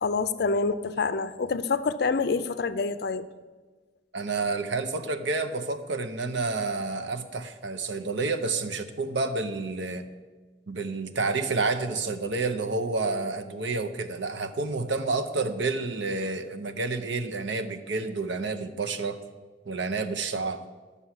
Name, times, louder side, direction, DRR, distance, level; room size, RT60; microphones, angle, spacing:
voice 1, 0.0-3.3, left 4 dB, 55° left, 13 dB, 0.5 m, -27 dB
voice 2, 4.1-10.1 10.7-19.2 19.7-20.6, right 3 dB, 70° right, 7 dB, 0.8 m, -29 dB
11.5 x 6.9 x 5.9 m, 1.4 s
head